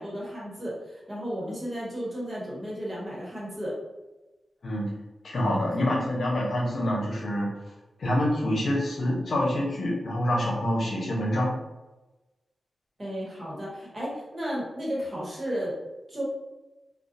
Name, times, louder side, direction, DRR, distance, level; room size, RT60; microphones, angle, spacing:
voice 1, 0.0-3.7 13.0-15.8 16.1-16.2, equal, 35° right, -6 dB, 1.2 m, -33 dB
voice 2, 5.2-7.5 8.0-11.5, left 1 dB, 70° left, -2 dB, 0.7 m, -26 dB
2.4 x 2.3 x 2.5 m, 1.1 s
cardioid pair, 45°, 0 cm